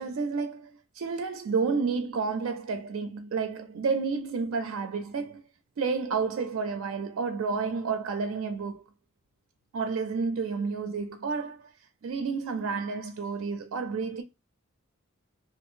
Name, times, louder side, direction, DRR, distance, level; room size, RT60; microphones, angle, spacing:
voice 1, 0.0-5.4 5.8-8.8 9.7-11.7 12.0-14.2, right 4 dB, 75° right, 0.4 m, -30 dB
2.5 x 2.4 x 3.6 m
head